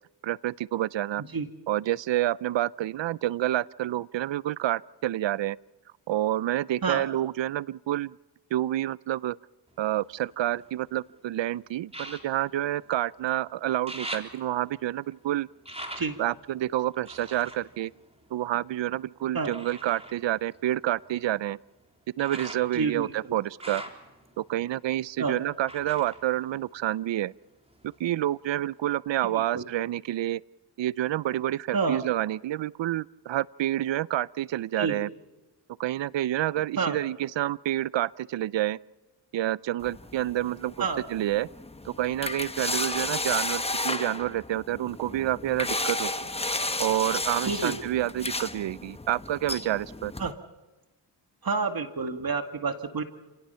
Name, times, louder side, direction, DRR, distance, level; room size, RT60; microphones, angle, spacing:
voice 1, 0.2-1.2 1.7-5.6 6.1-8.2 8.5-9.3 9.8-15.5 16.2-17.9 18.3-21.6 22.2-23.8 24.4-27.3 28.0-30.4 30.8-35.1 35.8-38.8 39.3-41.5 41.8-46.3 46.8-50.1, right 13 dB, 65° right, 21 dB, 0.6 m, -28 dB
sound 1, 9.7-11.0 11.9-13.4 13.6-18.8 19.4-27.3 27.6-28.4 28.9-29.0, right 1 dB, 10° right, 3.6 m, -44 dB
voice 2, 22.7-23.4 25.2-25.4 29.2-29.6 31.7-32.0 34.8-35.0 36.8-37.0 40.8-41.0 47.4-47.7 50.2-50.3 51.4-53.0, right 4 dB, 45° right, 7 dB, 2.2 m, -29 dB
sound 2, 39.8-50.3, left 2 dB, 15° left, 1.1 m, -33 dB
29.5 x 18.0 x 5.7 m, 1.1 s
cardioid pair, 55°, 48 cm